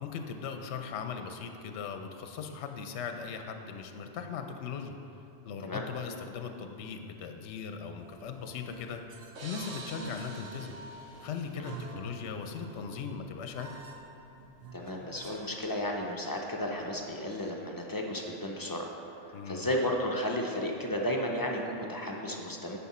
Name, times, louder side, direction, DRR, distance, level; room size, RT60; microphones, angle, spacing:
voice 1, 0.0-5.0 5.4-9.0 9.4-10.8 11.2-13.7 19.3-19.7, left 6 dB, 70° left, 6 dB, 0.8 m, -39 dB
sound 1, 8.0-15.6 15.9-16.0 16.8-17.3, right 3 dB, 60° right, 1.0 m, -48 dB
sound 2, 9.4-12.1, right 2 dB, 90° right, 1.4 m, -48 dB
voice 2, 14.7-18.9 19.2-22.8, left 1 dB, 25° left, 0 dB, 0.4 m, -33 dB
9.6 x 5.9 x 4.2 m, 2.8 s
omnidirectional pair, 1.2 m